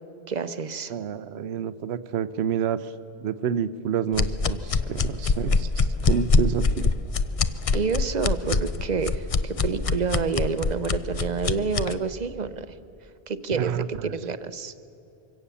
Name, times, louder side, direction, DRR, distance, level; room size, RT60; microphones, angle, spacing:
voice 1, 0.3-0.9 7.7-12.7 13.3-14.7, right 5 dB, 45° right, 12 dB, 0.8 m, -28 dB
voice 2, 0.9-2.9 3.2-6.9 13.5-14.1, right 8 dB, 80° right, 13 dB, 0.9 m, -29 dB
sound 1, 4.1-11.9, left 4 dB, 40° left, 0.6 m, -24 dB
24.0 x 17.0 x 7.0 m, 2.8 s
omnidirectional pair, 1.1 m